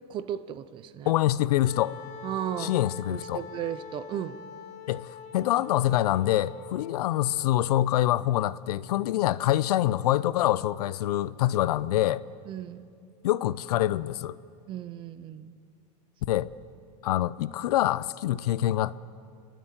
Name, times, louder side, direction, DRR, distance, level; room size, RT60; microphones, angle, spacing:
voice 1, 0.1-1.1 2.2-2.8 3.1-4.4 12.5-12.9 14.7-15.6, right 10 dB, 25° right, 15 dB, 0.6 m, -35 dB
voice 2, 1.1-1.9 2.6-3.4 4.9-12.2 13.2-14.4 16.3-16.5 17.0-19.0, left 13 dB, 70° left, 18 dB, 0.7 m, -25 dB
Wind instrument woodwind instrument, 1.6-7.6, left 7 dB, 35° left, 1.1 m, -44 dB
29.5 x 12.5 x 9.1 m, 2.5 s
supercardioid pair, 155°, 21 cm